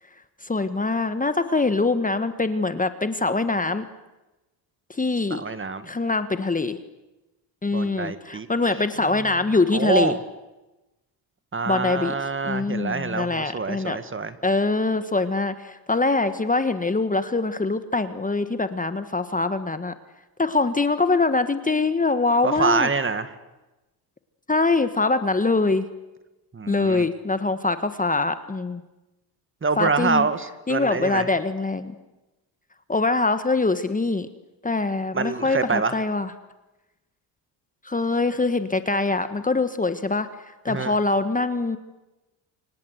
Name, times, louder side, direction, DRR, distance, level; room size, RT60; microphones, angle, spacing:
voice 1, 0.4-3.9 4.9-5.4 5.8-6.8 7.6-10.2 11.7-12.1 12.4-14.0 14.4-19.9 20.4-22.9 24.5-25.9 26.7-28.8 29.8-30.3 30.7-32.0 32.9-34.3 34.6-36.3 37.8-40.3 40.6-41.8, left 3 dB, 15° left, 10 dB, 1.5 m, -23 dB
voice 2, 5.3-5.9 7.7-8.5 9.7-10.2 11.5-14.4 22.4-23.3 26.5-27.1 29.6-31.3 35.1-36.0 40.7-41.0, right 4 dB, 25° right, 12 dB, 2.0 m, -26 dB
28.5 x 25.0 x 8.2 m, 1.0 s
supercardioid pair, 85°, 48 cm